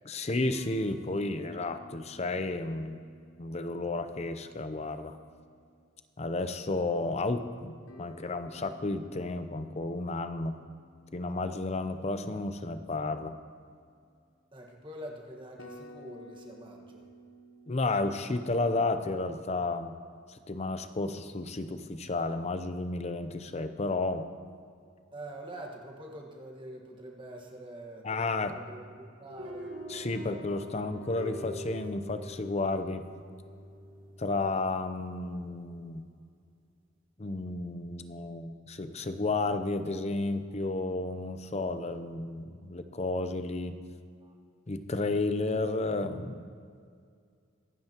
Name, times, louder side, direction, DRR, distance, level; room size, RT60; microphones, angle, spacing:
voice 1, 0.0-3.0 3.4-5.2 6.2-10.6 11.1-13.4 17.7-20.0 20.3-24.3 28.0-28.5 29.9-33.0 34.2-36.1 37.2-43.8 44.7-46.5, left 2 dB, 30° left, 9 dB, 0.6 m, -32 dB
sound 1, 0.5-5.8 7.9-14.5 15.2-15.3 15.6-19.3, right 1 dB, 80° left, 1.0 m, -55 dB
voice 2, 14.5-17.1 25.1-29.7 44.2-44.3, right 1 dB, 25° right, 0 dB, 1.5 m, -45 dB
sound 2, 29.3-35.5, equal, 70° right, 1.4 m, -44 dB
23.5 x 9.3 x 2.9 m, 2.2 s
head